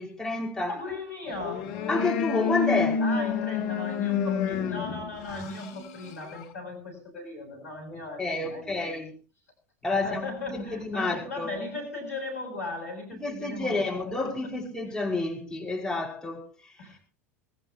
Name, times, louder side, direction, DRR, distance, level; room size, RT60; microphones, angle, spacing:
voice 1, 0.0-0.8 1.3-1.4 1.9-3.0 7.9-9.1 9.8-11.5 13.2-17.0, left 2 dB, 10° left, 5.7 m, -30 dB
voice 2, 0.7-1.7 3.0-8.9 9.9-14.3 16.8-17.0, left 2 dB, 75° left, 8.0 m, -37 dB
sound 1, 1.3-6.5, left 7 dB, 55° left, 2.0 m, -29 dB
21.0 x 17.5 x 3.0 m
figure-of-eight pair, 80°, 8 cm